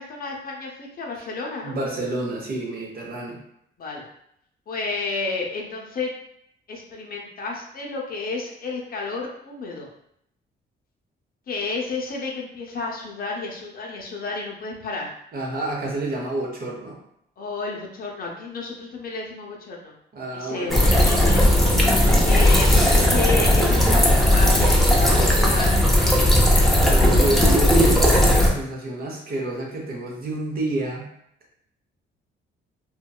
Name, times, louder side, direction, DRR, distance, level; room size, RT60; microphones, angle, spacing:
voice 1, 0.0-1.7 3.8-4.0 4.7-6.1 6.7-9.9 11.5-15.1 17.4-19.9 20.3-21.4 22.0-26.7, left 3 dB, 50° left, -1 dB, 0.6 m, -31 dB
voice 2, 1.6-3.4 15.3-17.0 20.1-21.2 26.4-31.1, right 2 dB, 50° right, -1 dB, 0.8 m, -29 dB
sound 1, 20.7-28.5, left 1 dB, ahead, 0.5 m, -17 dB
2.7 x 2.1 x 2.3 m, 0.73 s
cardioid pair, 90°, 20 cm